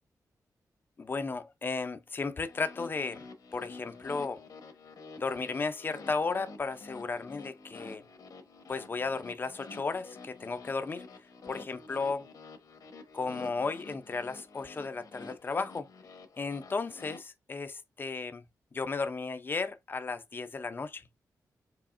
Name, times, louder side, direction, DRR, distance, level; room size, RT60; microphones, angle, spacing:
voice 1, 1.0-4.4 5.2-8.1 8.7-11.0 11.5-12.3 13.1-15.9 16.4-18.4 18.7-21.1, left 4 dB, 30° left, 0.6 m, -34 dB
sound 1, 2.4-17.2, left 3 dB, 65° left, 1.0 m, -49 dB
4.9 x 3.1 x 2.5 m
wide cardioid pair, 135°, 7 cm